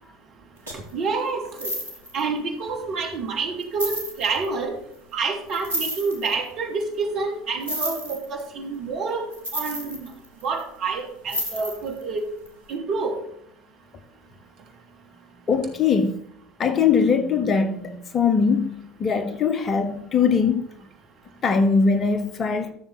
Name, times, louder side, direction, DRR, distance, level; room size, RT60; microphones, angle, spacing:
voice 1, 0.7-1.7 2.1-4.7 5.1-9.2 9.5-10.1 10.4-12.2 12.7-13.1, right 4 dB, 50° right, 2.8 m, -28 dB
sound 1, 0.7-0.9 1.4-2.2 3.0-3.1 3.6-4.5 5.5-6.3 7.6-8.5 9.3-10.6 11.3-12.0 12.5-12.6, equal, 90° right, 2.1 m, -31 dB
voice 2, 15.5-16.2 16.6-20.7 21.4-22.7, left 5 dB, 35° left, 1.1 m, -21 dB
14.5 x 6.8 x 4.3 m
figure-of-eight pair, 70°, 0 cm